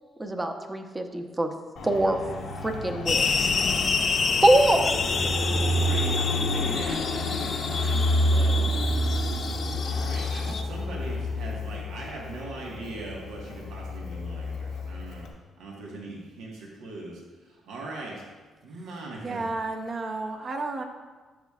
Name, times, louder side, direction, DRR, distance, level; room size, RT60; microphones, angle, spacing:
voice 1, 0.2-1.5 1.8-2.2 2.6-3.5 4.4-4.8, right 1 dB, 20° right, 5 dB, 0.8 m, -23 dB
Fixed-wing aircraft airplane, 1.8-15.3, equal, 80° left, 1.1 m, -29 dB
sound 1, 3.1-10.6, left 5 dB, 50° left, 0.4 m, -28 dB
voice 2, 5.6-8.8 9.8-15.3 15.6-18.2 18.6-19.5, right 2 dB, 85° right, -3 dB, 1.4 m, -40 dB
voice 3, 19.2-20.8, right 3 dB, 45° right, 5 dB, 0.9 m, -32 dB
11.0 x 7.1 x 2.4 m, 1.3 s
cardioid pair, 90°, 0 cm